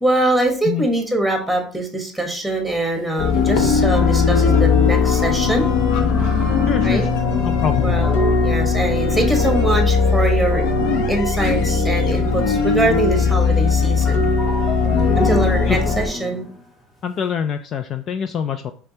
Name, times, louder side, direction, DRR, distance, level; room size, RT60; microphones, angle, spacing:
voice 1, 0.0-5.7 6.8-7.0 7.8-10.6 11.1-14.3 15.2-16.5, right 1 dB, 5° left, 3 dB, 1.2 m, -22 dB
sound 1, 2.7-2.8 3.5-13.1 13.3-17.2, left 2 dB, 30° left, 1.4 m, -32 dB
sound 2, 3.2-16.1, left 5 dB, 75° left, 0.8 m, -18 dB
voice 2, 6.7-7.0 7.4-7.9 15.7-15.9 17.0-18.7, left 8 dB, 45° left, 10 dB, 0.4 m, -24 dB
5.1 x 3.4 x 2.8 m, 0.41 s
supercardioid pair, 95°, 0 cm